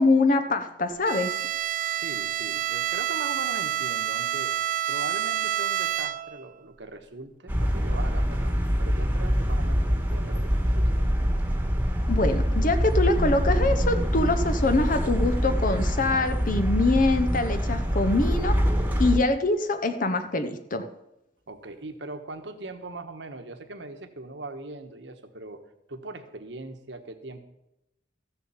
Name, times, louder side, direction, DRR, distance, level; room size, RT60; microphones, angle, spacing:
voice 1, 0.0-1.3 12.1-18.6 19.0-20.9, left 2 dB, 45° left, 8 dB, 0.8 m, -24 dB
Bowed string instrument, 1.0-6.5, right 11 dB, 45° right, 0.3 m, -28 dB
voice 2, 1.8-11.2 21.5-25.6 25.9-27.4, right 2 dB, 70° right, 7 dB, 1.3 m, -40 dB
sound 1, 7.5-19.2, equal, 10° right, 1.4 m, -25 dB
14.5 x 7.0 x 7.1 m, 0.86 s
head